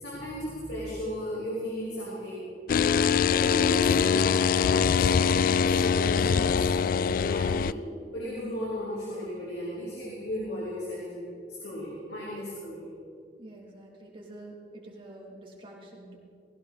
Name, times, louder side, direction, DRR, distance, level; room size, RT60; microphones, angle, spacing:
voice 1, 0.0-2.5 3.3-7.7 8.1-11.3 11.6-12.9, equal, 70° left, -6 dB, 3.8 m, -35 dB
sound 1, 2.7-7.7, left 6 dB, 50° left, 0.3 m, -23 dB
voice 2, 13.4-16.2, right 1 dB, 30° right, -2 dB, 3.1 m, -47 dB
19.5 x 16.5 x 4.1 m, 2.3 s
head